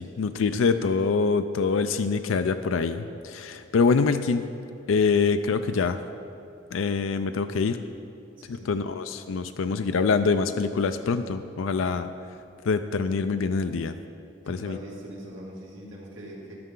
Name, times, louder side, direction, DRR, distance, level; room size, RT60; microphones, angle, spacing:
voice 1, 0.0-4.4 4.9-6.0 6.7-7.8 8.5-12.1 12.6-13.9 14.5-14.8, left 4 dB, 90° left, 8 dB, 0.4 m, -25 dB
voice 2, 8.4-8.7 14.4-16.5, right 1 dB, 85° right, -4 dB, 2.5 m, -41 dB
13.5 x 10.5 x 3.8 m, 2.8 s
head